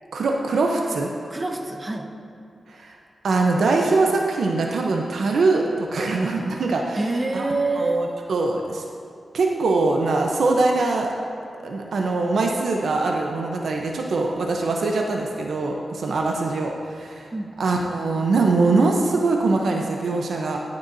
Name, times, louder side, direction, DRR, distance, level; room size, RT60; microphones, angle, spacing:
voice 1, 0.1-1.1 2.7-3.0 3.2-7.0 7.3-7.5 7.8-8.8 9.3-11.1 11.6-17.3 17.6-20.6, right 3 dB, 80° right, 1 dB, 0.7 m, -22 dB
voice 2, 1.3-2.1 6.9-8.0 17.3-17.5, right 2 dB, 35° right, 1 dB, 1.1 m, -26 dB
18.5 x 6.9 x 2.7 m, 2.6 s
cardioid pair, 65°, 0 cm